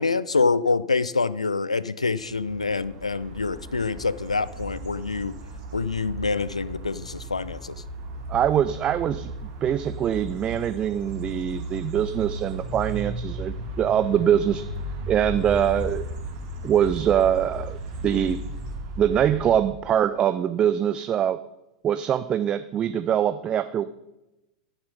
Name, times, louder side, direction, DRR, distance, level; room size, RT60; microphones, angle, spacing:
voice 1, 0.0-5.3 5.7-7.8, left 4 dB, 80° left, 17 dB, 0.4 m, -26 dB
sound 1, 2.3-19.8, right 1 dB, 45° right, 2.6 m, -35 dB
voice 2, 8.3-9.3 9.6-14.7 15.1-16.1 16.6-17.8 18.0-18.4 19.0-21.4 21.8-23.8, right 9 dB, 25° right, 12 dB, 0.4 m, -23 dB
12.0 x 7.2 x 5.4 m, 0.92 s
figure-of-eight pair, 90°, 3 cm